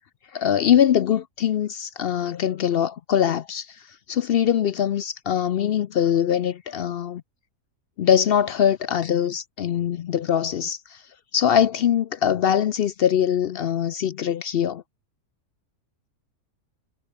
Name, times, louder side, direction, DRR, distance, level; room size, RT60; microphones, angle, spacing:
voice 1, 0.3-3.8 4.1-7.2 8.0-11.0 11.3-14.8, left 9 dB, 65° left, 0.5 m, -22 dB
omnidirectional pair, 1.6 m